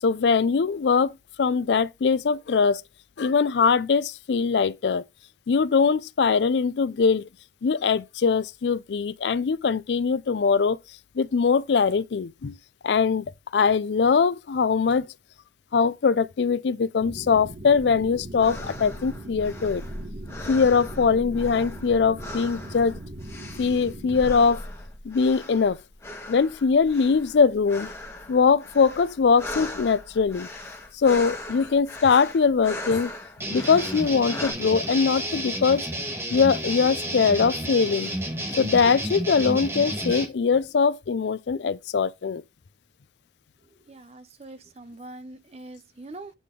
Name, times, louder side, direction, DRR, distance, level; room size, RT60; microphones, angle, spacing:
voice 1, 0.0-2.8 3.2-5.0 5.5-7.3 7.6-10.8 11.1-12.6 12.8-13.3 13.5-15.1 15.7-19.8 20.5-23.0 23.6-24.6 25.0-25.8 26.3-27.9 28.3-30.5 30.9-33.1 33.5-35.9 36.3-38.1 38.6-42.4, left 5 dB, 80° left, 0.4 m, -22 dB
sound 1, 17.0-24.3, right 1 dB, 70° right, 2.0 m, -40 dB
sound 2, 18.2-34.5, left 1 dB, 15° left, 1.2 m, -39 dB
sound 3, 33.4-40.3, right 1 dB, 15° right, 1.2 m, -31 dB
voice 2, 43.9-46.3, right 2 dB, 35° right, 0.5 m, -43 dB
8.4 x 3.7 x 3.7 m
head